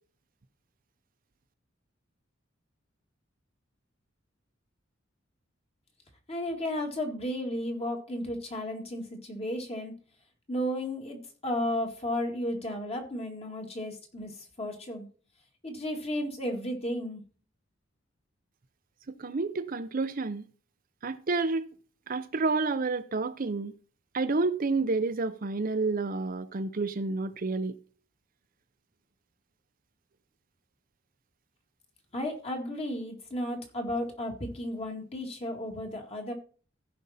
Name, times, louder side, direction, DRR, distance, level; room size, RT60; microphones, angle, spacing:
voice 1, 6.3-9.9 10.5-15.1 15.6-17.2 32.1-36.3, left 1 dB, 30° left, 2.0 m, -33 dB
voice 2, 19.1-20.5 21.0-21.6 22.1-23.7 24.1-27.8, right 3 dB, 45° right, 0.6 m, -29 dB
15.5 x 5.3 x 4.2 m
head